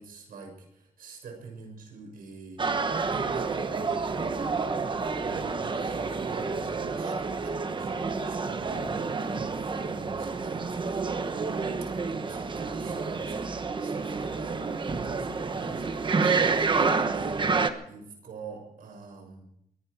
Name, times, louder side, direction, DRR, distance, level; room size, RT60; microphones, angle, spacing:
voice 1, 0.0-2.6 3.1-4.6 5.1-11.3 12.0-17.5 17.8-19.4, right 4 dB, 80° right, 2 dB, 6.7 m, -46 dB
sound 1, 2.6-17.7, right 4 dB, 35° right, 1.2 m, -29 dB
23.0 x 12.0 x 4.9 m, 0.73 s
cardioid pair, 120°, 15 cm